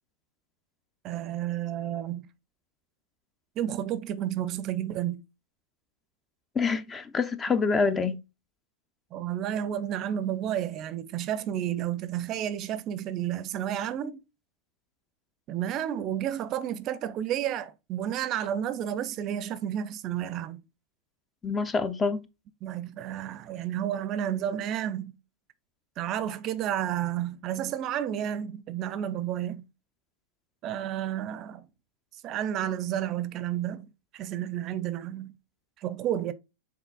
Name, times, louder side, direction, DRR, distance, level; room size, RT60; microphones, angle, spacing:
voice 1, 1.0-2.3 3.6-5.2 9.1-14.2 15.5-20.6 22.6-25.2 26.0-29.6 30.6-31.7 32.2-33.9 34.1-35.3 35.8-36.3, right 10 dB, 40° right, 0.5 m, -31 dB
voice 2, 6.6-8.2 21.4-22.3, left 4 dB, 20° left, 0.5 m, -26 dB
5.7 x 3.6 x 2.3 m
hypercardioid pair, 105°, 0 cm